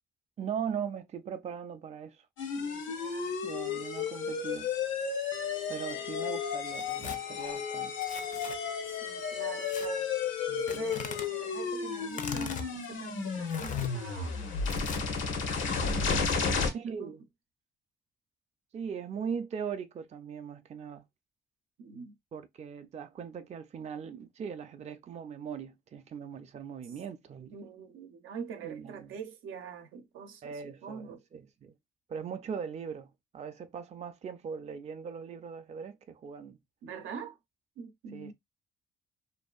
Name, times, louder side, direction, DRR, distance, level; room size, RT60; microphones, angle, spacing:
voice 1, 0.4-2.3 3.4-4.7 5.7-8.0 10.5-10.9 16.7-17.3 18.7-21.0 22.3-27.6 28.6-29.2 30.4-31.7 32.1-36.6 38.1-38.3, right 7 dB, 35° right, 0.4 m, -40 dB
sound 1, 2.4-16.7, left 5 dB, 80° left, 0.8 m, -33 dB
voice 2, 2.6-3.4 3.7-3.9 5.9-6.0 8.9-10.1 10.7-14.4 16.1-17.1 21.8-22.2 27.5-31.2 36.8-37.4 37.8-38.3, right 6 dB, 85° right, 0.6 m, -45 dB
Tearing, 6.7-7.2 8.0-8.6 9.6-9.9 10.7-11.3 12.1-12.7 13.5-13.9 14.6-15.2, left 6 dB, 40° left, 0.4 m, -40 dB
2.6 x 2.4 x 2.3 m
cardioid pair, 90°, 20 cm